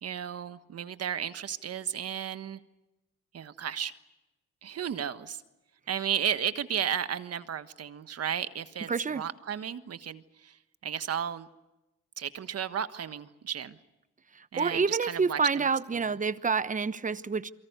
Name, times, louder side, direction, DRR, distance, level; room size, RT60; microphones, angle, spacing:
voice 1, 0.0-2.6 3.3-3.9 4.6-5.4 5.9-10.6 10.8-11.5 12.2-13.8 14.5-15.7 15.9-16.1, right 8 dB, 55° right, 1.4 m, -34 dB
voice 2, 8.9-9.2 14.6-17.5, right 5 dB, 25° right, 1.0 m, -28 dB
28.5 x 23.5 x 6.8 m
cardioid pair, 90°, 30 cm